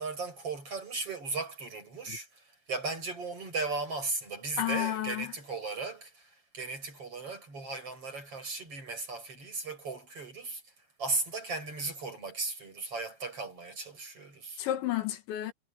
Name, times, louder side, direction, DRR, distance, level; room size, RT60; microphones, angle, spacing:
voice 1, 0.0-10.6 11.0-14.6, right 3 dB, 30° right, 8.7 m, -36 dB
voice 2, 4.6-5.3 14.6-15.5, left 13 dB, 85° left, 4.1 m, -31 dB
omnidirectional pair, 5.1 m